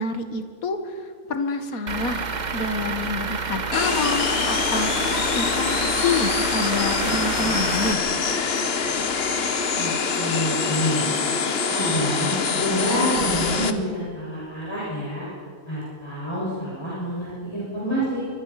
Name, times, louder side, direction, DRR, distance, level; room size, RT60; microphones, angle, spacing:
voice 1, 0.0-8.0, left 3 dB, 90° left, 7 dB, 2.0 m, -28 dB
Truck / Idling, 1.9-7.9, right 5 dB, 35° right, 1.0 m, -29 dB
sound 1, 3.7-13.7, left 5 dB, 50° left, 1.3 m, -24 dB
sound 2, 6.7-10.4 10.7-10.8 11.8-13.7, equal, 70° left, 4.9 m, -39 dB
voice 2, 9.8-11.0 11.7-15.3 15.7-18.2, equal, 20° left, -8 dB, 6.7 m, -27 dB
25.5 x 24.0 x 5.8 m, 2.1 s
omnidirectional pair, 1.5 m